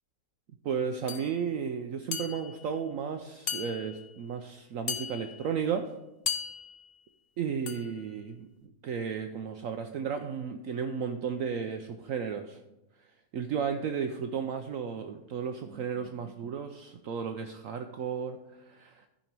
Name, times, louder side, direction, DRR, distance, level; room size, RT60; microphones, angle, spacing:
voice 1, 0.6-5.9 7.4-12.6 13.3-18.4 18.7-19.1, right 7 dB, 65° right, 6 dB, 0.9 m, -34 dB
sound 1, 1.1-1.3 2.1-2.7 3.5-4.1 4.9-5.5 6.3-6.9 7.7-8.0, left 7 dB, 60° left, 0.6 m, -36 dB
13.0 x 5.2 x 4.5 m, 0.98 s
omnidirectional pair, 1.7 m